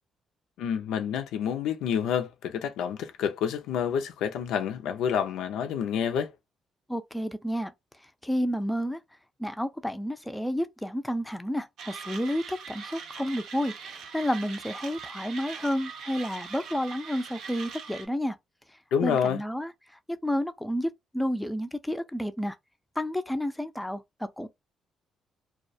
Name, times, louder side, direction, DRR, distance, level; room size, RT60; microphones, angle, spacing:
voice 1, 0.6-6.3 18.9-19.4, left 8 dB, 90° left, 0.4 m, -28 dB
voice 2, 6.9-7.7 8.2-9.0 9.4-18.4 19.0-19.7 20.2-22.6 23.0-24.5, equal, 5° left, 0.4 m, -30 dB
Mechanisms, 11.8-18.1, right 6 dB, 80° right, 0.5 m, -42 dB
2.3 x 2.1 x 2.6 m
cardioid pair, 90°, 0 cm